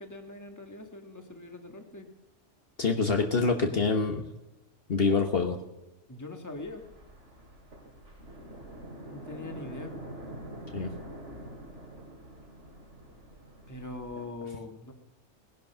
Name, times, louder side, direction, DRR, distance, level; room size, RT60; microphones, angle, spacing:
voice 1, 0.0-2.1 6.1-6.8 9.1-9.9 13.7-14.9, left 2 dB, 15° left, 5 dB, 1.5 m, -42 dB
voice 2, 2.8-4.2 4.9-5.6 10.7-10.9, left 4 dB, 50° left, 4 dB, 1.4 m, -26 dB
sound 1, 6.5-14.3, right 1 dB, 70° right, 2.8 m, -45 dB
18.5 x 11.0 x 5.6 m, 0.99 s
omnidirectional pair, 1.3 m